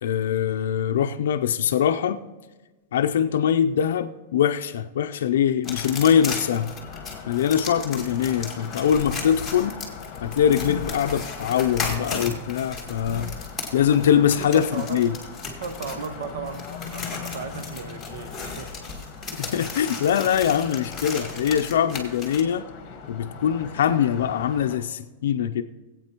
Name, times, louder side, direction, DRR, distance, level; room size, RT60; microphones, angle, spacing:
voice 1, 0.0-2.2 2.9-6.7 7.3-9.8 10.2-13.3 13.7-15.1 19.4-22.6 23.1-25.6, left 9 dB, 75° left, 8 dB, 0.5 m, -22 dB
sound 1, 5.6-24.8, left 6 dB, 30° left, 1.3 m, -40 dB
sound 2, 5.6-22.4, left 4 dB, 5° left, 1.6 m, -36 dB
sound 3, 8.8-9.6 10.2-11.1 11.5-12.0 12.6-13.5, left 7 dB, 50° left, 0.8 m, -36 dB
voice 2, 14.4-15.0 15.6-16.6 16.9-18.7, right 6 dB, 65° right, 9 dB, 1.0 m, -35 dB
19.0 x 8.5 x 3.0 m, 1.2 s
supercardioid pair, 170°, 0 cm